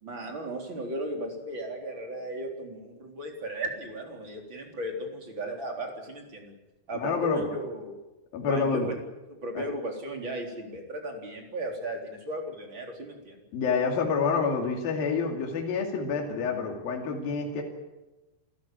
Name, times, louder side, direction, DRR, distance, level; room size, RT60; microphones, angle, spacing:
voice 1, 0.0-6.5 6.9-7.9 8.5-9.0 9.3-13.4, right 1 dB, 30° right, 2 dB, 4.1 m, -36 dB
voice 2, 6.9-7.5 8.3-8.9 9.6-9.7 13.5-17.6, left 5 dB, 60° left, 1 dB, 4.2 m, -28 dB
29.0 x 14.0 x 8.9 m, 1.1 s
omnidirectional pair, 4.9 m